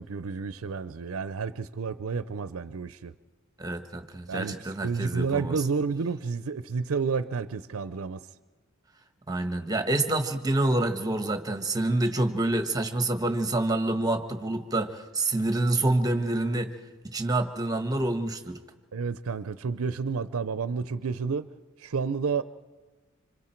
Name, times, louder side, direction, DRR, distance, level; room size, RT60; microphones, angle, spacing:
voice 1, 0.0-3.1 4.3-8.3 18.9-21.5 21.8-22.4, right 5 dB, 85° right, 14 dB, 0.5 m, -30 dB
voice 2, 3.6-5.6 9.3-16.7 17.0-18.6, right 2 dB, 20° right, 8 dB, 1.2 m, -27 dB
26.5 x 25.5 x 4.5 m, 1.3 s
head